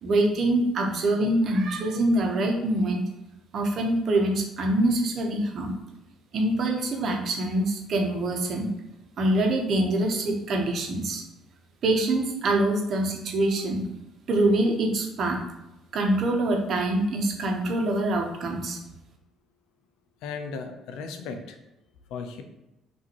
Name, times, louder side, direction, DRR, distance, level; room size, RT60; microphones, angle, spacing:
voice 1, 0.0-3.0 3.5-5.8 6.3-8.7 9.2-11.2 11.8-13.9 14.3-15.4 15.9-18.8, right 1 dB, 55° right, 2 dB, 0.9 m, -25 dB
voice 2, 20.2-21.6 22.1-22.4, left 5 dB, 70° left, 6 dB, 0.6 m, -36 dB
5.8 x 2.7 x 3.0 m, 0.95 s
hypercardioid pair, 55°, 0 cm